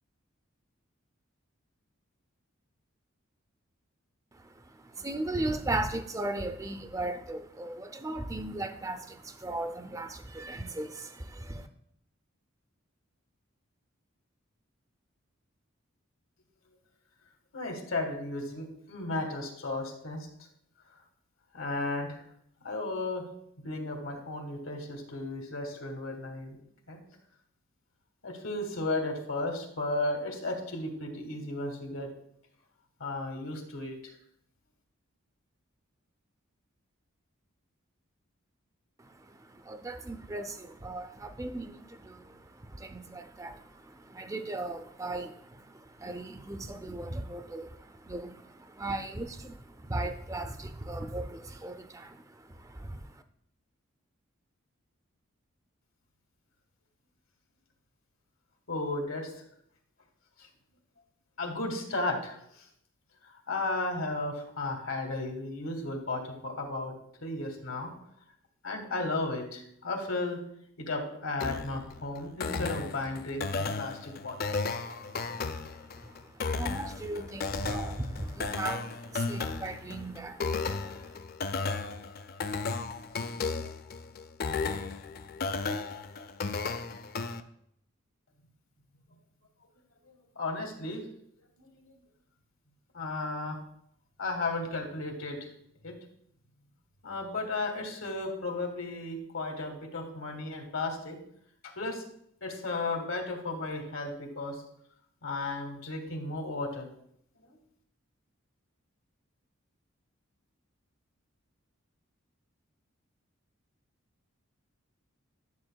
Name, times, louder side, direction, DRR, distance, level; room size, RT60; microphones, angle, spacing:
voice 1, 4.3-11.7 39.0-53.2 74.8-81.2, right 2 dB, 15° right, 9 dB, 0.4 m, -38 dB
voice 2, 17.5-20.3 21.5-22.3 22.6-23.2 23.6-26.6 26.9-27.0 28.2-32.1 33.0-34.1 58.7-59.4 60.4-60.5 61.4-62.7 63.2-66.9 67.2-67.9 68.6-70.4 70.8-74.5 90.0-91.0 91.6-91.9 92.9-93.6 94.2-95.4 95.8-95.9 97.0-101.2 101.6-102.0 102.4-104.6 105.2-106.9 107.4-107.5, left 2 dB, 75° left, 3 dB, 1.5 m, -34 dB
sound 1, 71.4-87.4, left 4 dB, 45° left, 0.4 m, -34 dB
10.5 x 6.9 x 2.3 m, 0.70 s
head